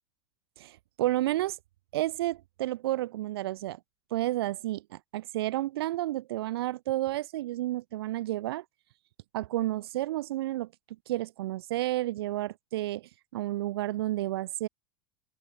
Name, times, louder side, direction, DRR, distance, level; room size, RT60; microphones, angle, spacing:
voice 1, 0.6-1.6 1.9-3.8 4.1-8.6 9.3-10.7 11.1-14.7, right 15 dB, 60° right, 2.5 m, -31 dB
open air
figure-of-eight pair, 80°, 14 cm